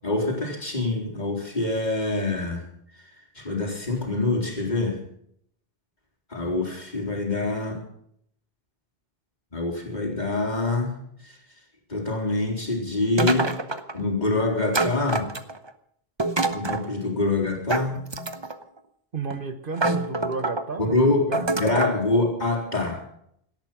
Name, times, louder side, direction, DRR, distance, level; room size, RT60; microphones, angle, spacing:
voice 1, 0.0-2.7 3.4-5.0 6.3-7.8 9.5-11.0 11.2-11.3 11.9-13.5 13.9-15.3 16.5-18.0 20.8-21.3 21.6-23.0, left 2 dB, 45° left, -1 dB, 4.1 m, -25 dB
sound 1, 13.2-14.0 14.7-15.7 16.2-16.9 17.7-18.6 19.3-19.4 19.8-20.6 21.3-22.0, right 2 dB, 25° right, 0.9 m, -26 dB
voice 2, 19.1-21.5, right 5 dB, 55° right, 9 dB, 1.3 m, -32 dB
18.0 x 13.0 x 6.1 m, 0.70 s
omnidirectional pair, 1.1 m